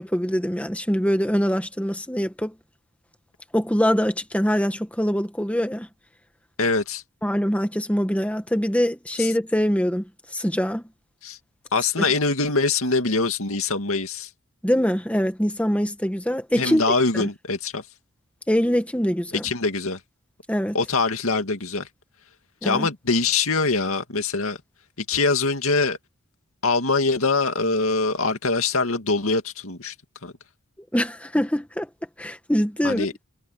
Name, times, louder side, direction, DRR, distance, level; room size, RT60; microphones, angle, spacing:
voice 1, 0.0-2.5 3.5-5.9 7.2-10.0 10.3-10.8 12.0-12.1 14.6-16.8 17.1-17.3 18.5-19.5 20.5-20.8 22.6-22.9 30.9-31.9 32.2-33.1, equal, 5° left, 1.6 m, -23 dB
voice 2, 6.6-7.0 9.2-9.3 11.2-11.4 11.7-14.3 16.6-17.8 19.4-20.0 20.7-21.9 22.6-24.6 25.1-26.0 26.6-29.9 30.2-30.3 32.8-33.1, left 3 dB, 70° left, 2.3 m, -23 dB
head